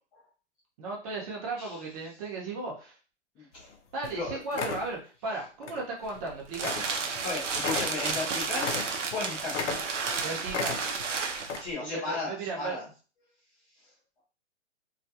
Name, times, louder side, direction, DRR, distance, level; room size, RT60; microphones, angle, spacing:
voice 1, 0.8-3.0 3.9-6.8 10.2-10.8 11.8-12.8, right 3 dB, 30° right, -2 dB, 0.8 m, -36 dB
voice 2, 3.4-3.7 4.1-4.4 7.2-8.7 9.1-9.6 11.6-12.8, left 3 dB, 10° left, -7 dB, 0.4 m, -35 dB
sound 1, 3.6-3.7 4.0-4.2 4.5-4.9 5.6-5.8 6.2-6.3 6.6-6.9 7.2-7.3 7.6-9.2 9.5-10.2 10.5-11.1 11.4-11.6, left 5 dB, 80° left, 0.6 m, -34 dB
sound 2, 6.0-11.7, right 5 dB, 85° right, 0.6 m, -32 dB
2.4 x 2.2 x 2.7 m, 0.37 s
hypercardioid pair, 135°, 35 cm